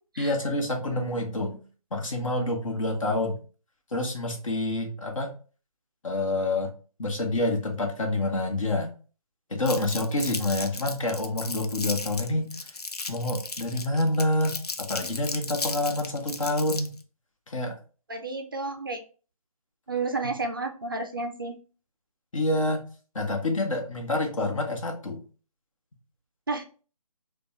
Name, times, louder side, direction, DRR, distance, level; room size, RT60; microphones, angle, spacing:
voice 1, 0.2-1.6 1.9-3.4 3.9-5.3 6.0-6.7 7.0-8.9 9.5-12.5 13.1-16.9 17.5-17.8 20.2-20.3 22.3-22.8 23.1-25.2, left 1 dB, 60° left, 2 dB, 1.1 m, -27 dB
Crumpling crinkling, 9.6-17.0, left 3 dB, 90° left, 0.6 m, -35 dB
voice 2, 18.1-19.0 19.9-21.6 26.5-26.6, right 3 dB, 35° right, 5 dB, 0.4 m, -31 dB
5.1 x 2.2 x 2.9 m, 0.37 s
figure-of-eight pair, 160°, 19 cm